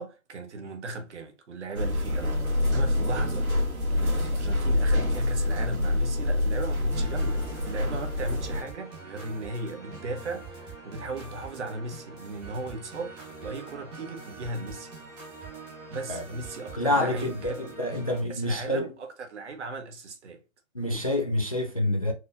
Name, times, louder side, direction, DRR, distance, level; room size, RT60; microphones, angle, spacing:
voice 1, 0.0-14.9 15.9-20.4 20.8-21.1, right 2 dB, 55° right, 1.1 m, -37 dB
sound 1, 1.8-8.6, left 1 dB, 90° right, 1.6 m, -26 dB
sound 2, 6.9-18.2, right 3 dB, 10° right, 1.0 m, -44 dB
voice 2, 16.8-18.8 20.7-22.1, left 1 dB, 30° left, 0.4 m, -27 dB
4.5 x 3.2 x 2.5 m
figure-of-eight pair, 140°, 42 cm